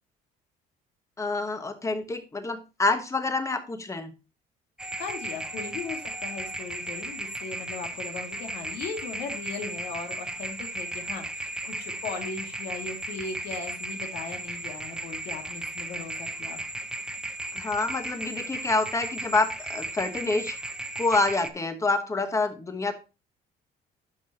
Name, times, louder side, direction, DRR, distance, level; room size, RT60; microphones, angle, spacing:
voice 1, 1.2-4.1 17.5-20.6 21.0-22.9, left 3 dB, 20° left, 9 dB, 1.1 m, -27 dB
sound 1, 4.8-21.5, right 1 dB, 5° right, 0.6 m, -35 dB
voice 2, 5.0-16.6, left 5 dB, 75° left, 3 dB, 2.1 m, -38 dB
12.0 x 5.5 x 2.8 m, 0.30 s
cardioid pair, 110°, 17 cm